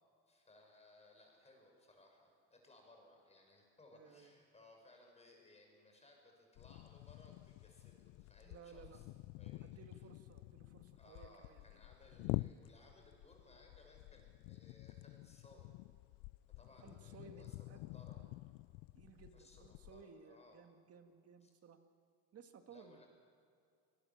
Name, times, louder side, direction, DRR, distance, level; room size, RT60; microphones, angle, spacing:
voice 1, 0.3-9.0 9.4-10.0 10.9-15.7 16.6-18.2 19.3-20.6 21.4-21.5 22.7-23.1, left 2 dB, 20° left, 2 dB, 6.1 m, -64 dB
voice 2, 3.9-4.3 8.4-9.0 9.6-11.6 16.8-17.8 18.1-18.3 18.9-21.8 22.3-23.0, right 6 dB, 45° right, 6 dB, 2.0 m, -59 dB
sound 1, 6.6-20.0, left 21 dB, 80° left, 0.5 m, -48 dB
25.5 x 20.5 x 7.3 m, 2.4 s
cardioid pair, 120°, 33 cm